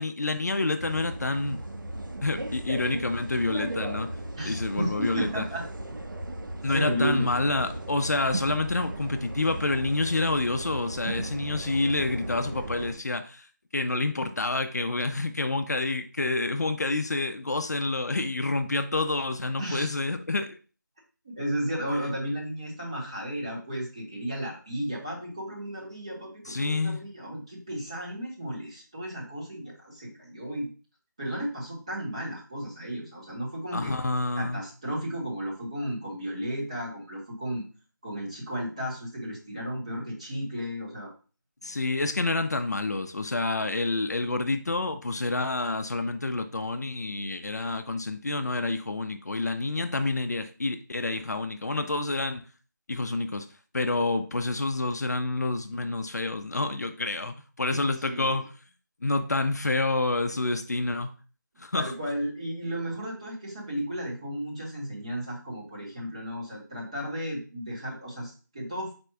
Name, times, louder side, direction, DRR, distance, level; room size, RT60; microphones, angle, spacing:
voice 1, 0.0-1.6 2.2-4.2 4.4-5.4 6.6-13.5 13.7-20.6 26.5-27.0 33.7-34.6 41.6-52.5 52.9-53.5 53.7-58.5 59.0-61.1 61.6-61.9, left 2 dB, 55° left, 0.4 m, -28 dB
sound 1, 0.8-12.9, right 1 dB, 85° right, 0.7 m, -36 dB
voice 2, 4.4-5.6 6.7-7.4 19.6-19.9 21.4-30.7 31.2-33.9 34.4-37.6 38.0-41.1 57.7-58.4 61.7-68.9, equal, 15° right, 0.8 m, -33 dB
4.2 x 2.2 x 4.5 m
figure-of-eight pair, 175°, 10 cm